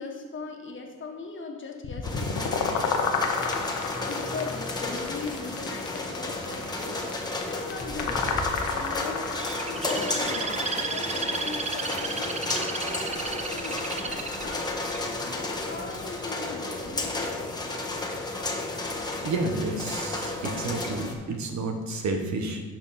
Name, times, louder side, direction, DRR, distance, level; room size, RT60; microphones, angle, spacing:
voice 1, 0.0-3.0 4.0-7.1 7.5-9.3 9.7-14.8 15.2-17.4, left 4 dB, 40° left, 2 dB, 1.5 m, -39 dB
sound 1, 1.8-10.0, left 5 dB, 75° left, 1.0 m, -30 dB
sound 2, 2.0-21.1, left 2 dB, 15° left, 1.2 m, -32 dB
Bird, 9.3-15.4 16.0-16.4, right 4 dB, 25° right, 0.6 m, -33 dB
voice 2, 19.2-22.6, right 2 dB, 65° right, 4 dB, 1.3 m, -30 dB
11.5 x 4.5 x 4.2 m, 1.4 s
cardioid pair, 90°, 30 cm